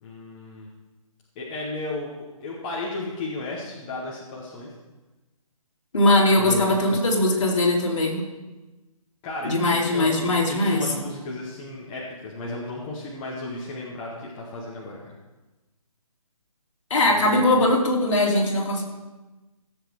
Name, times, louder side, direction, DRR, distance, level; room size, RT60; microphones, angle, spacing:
voice 1, 0.0-0.7 1.4-4.7 6.3-7.0 9.2-15.1 17.2-17.7, left 2 dB, 10° left, -4 dB, 0.9 m, -34 dB
voice 2, 5.9-8.2 9.4-10.9 16.9-18.8, left 1 dB, 55° left, -2 dB, 3.0 m, -20 dB
16.0 x 7.3 x 4.7 m, 1.1 s
hypercardioid pair, 170°, 19 cm